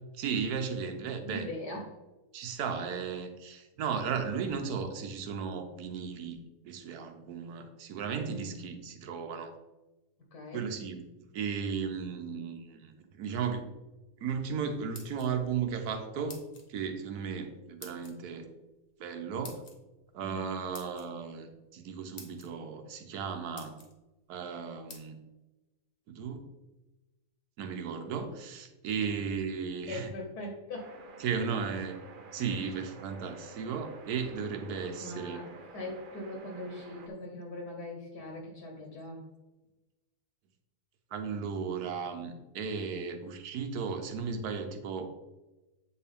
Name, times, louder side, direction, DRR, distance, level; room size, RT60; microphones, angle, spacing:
voice 1, 0.1-1.5 2.3-6.4 6.6-9.5 10.5-11.0 11.3-13.6 14.2-16.4 16.7-18.5 19.0-19.6 20.1-23.8 24.3-25.2 26.1-26.4 27.6-30.1 31.2-32.0 32.3-35.4 41.1-45.1, right 6 dB, 70° right, 7 dB, 1.3 m, -35 dB
voice 2, 1.2-1.8 8.2-8.6 10.3-10.6 20.2-20.6 29.8-30.9 32.6-32.7 35.0-35.5 35.7-39.2, left 1 dB, 75° left, 0 dB, 1.6 m, -41 dB
sound 1, 14.7-15.6 16.3-16.7 17.8-18.1 19.4-19.8 20.7-21.1 21.8-21.9 22.2-22.5 23.1-23.2 23.5-23.9 24.9-25.0, left 3 dB, 40° left, 1.2 m, -48 dB
sound 2, 30.7-37.1, right 3 dB, 55° right, 0.5 m, -50 dB
8.1 x 4.5 x 3.6 m, 1.1 s
omnidirectional pair, 1.7 m